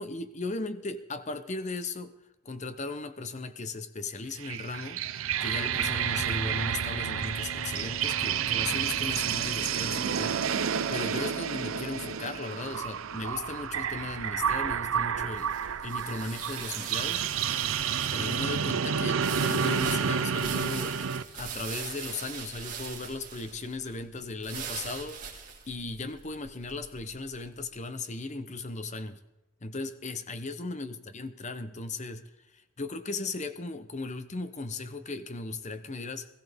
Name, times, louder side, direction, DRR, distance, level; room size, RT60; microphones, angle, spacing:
voice 1, 0.0-2.1 2.4-10.4 10.9-17.3 18.1-21.0 21.3-25.3 25.7-29.2 29.6-32.2 32.5-36.3, left 3 dB, 35° left, 10 dB, 0.8 m, -37 dB
sound 1, 4.3-21.2, right 7 dB, 70° right, 0.6 m, -30 dB
sound 2, 5.5-12.1, left 2 dB, 60° left, 6.0 m, -44 dB
sound 3, 14.3-27.6, right 6 dB, 40° right, 2.4 m, -41 dB
20.5 x 14.5 x 3.6 m, 0.96 s
head